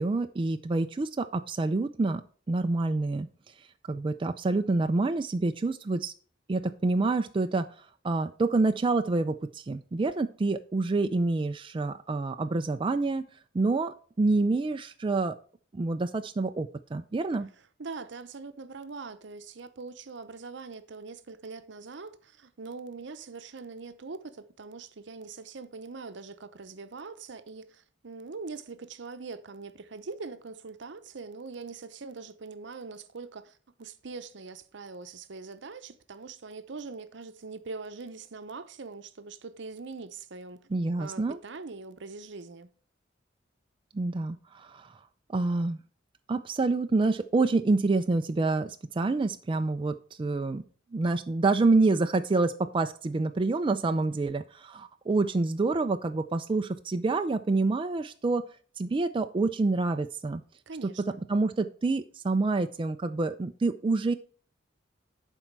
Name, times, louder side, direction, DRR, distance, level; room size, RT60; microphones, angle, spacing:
voice 1, 0.0-2.2 2.5-3.3 3.9-6.1 6.5-7.6 8.0-13.2 13.5-15.4 15.7-17.5 40.7-41.4 43.9-44.9 45.3-45.8 46.3-50.6 50.9-58.4 58.8-60.4 60.8-60.9 61.3-64.1, right 3 dB, 25° right, 0.4 m, -27 dB
voice 2, 17.8-40.7 41.0-42.7 53.9-54.0 60.7-61.2, right 4 dB, 70° right, 0.8 m, -42 dB
11.5 x 4.5 x 4.5 m
head